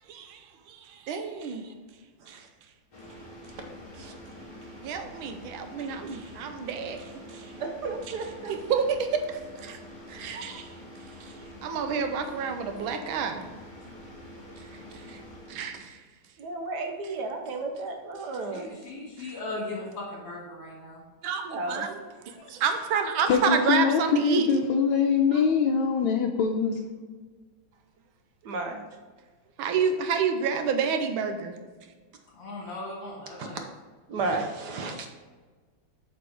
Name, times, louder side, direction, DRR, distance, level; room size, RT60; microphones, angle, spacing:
voice 1, 0.1-1.7 2.3-2.4 4.8-7.5 8.4-9.8 10.1-10.7 11.6-13.4 15.1-15.2 15.5-16.0 19.2-19.3 21.2-22.0 22.2-24.5 25.3-25.4 29.6-31.5, right 6 dB, 85° right, 6 dB, 1.5 m, -29 dB
sound 1, 2.9-15.9, equal, 25° left, 2.0 m, -46 dB
voice 2, 7.6-8.5 16.4-18.7 21.5-21.9 28.4-28.8 33.4-33.6 34.1-35.1, right 3 dB, 65° right, 4 dB, 1.2 m, -33 dB
voice 3, 18.5-21.0 32.3-33.6, left 2 dB, 65° left, -4 dB, 2.5 m, -38 dB
voice 4, 23.3-26.8, left 6 dB, 85° left, 0 dB, 1.4 m, -23 dB
8.3 x 5.2 x 3.5 m, 1.4 s
omnidirectional pair, 2.2 m